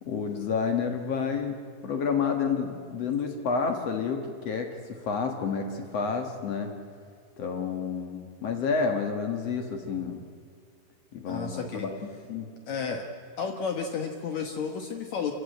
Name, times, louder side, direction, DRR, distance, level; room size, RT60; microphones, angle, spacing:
voice 1, 0.0-1.6 1.8-6.7 7.4-10.2 11.1-12.0 12.3-12.5, left 5 dB, 60° left, 5 dB, 1.6 m, -29 dB
voice 2, 11.3-11.9 12.7-13.0 13.4-15.3, left 5 dB, 85° left, 4 dB, 1.5 m, -32 dB
27.5 x 15.5 x 9.1 m, 2.2 s
omnidirectional pair, 5.1 m